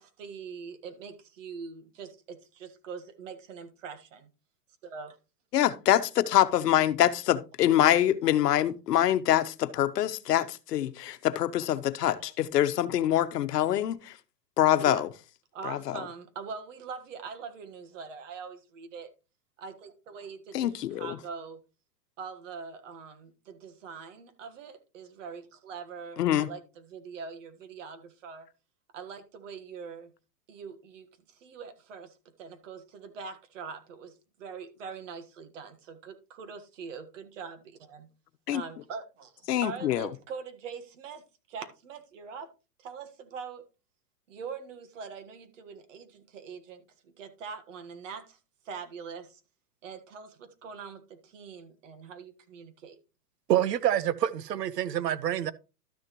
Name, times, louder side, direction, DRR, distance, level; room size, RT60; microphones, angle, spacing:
voice 1, 0.0-4.3 4.8-5.2 12.2-12.3 14.8-15.0 15.5-19.1 19.6-21.6 22.2-28.5 28.9-30.1 30.5-38.1 38.5-42.5 42.8-43.6 44.3-48.4 48.6-49.4 49.8-53.0, right 5 dB, 50° right, 1.6 m, -43 dB
voice 2, 5.5-14.1 14.6-15.1 15.6-16.0 20.5-21.2 26.2-26.5 38.5-38.6 39.5-40.1, left 12 dB, 75° left, 1.1 m, -25 dB
voice 3, 53.5-55.5, right 11 dB, 75° right, 1.0 m, -27 dB
12.5 x 6.5 x 3.0 m
hypercardioid pair, 160°, 48 cm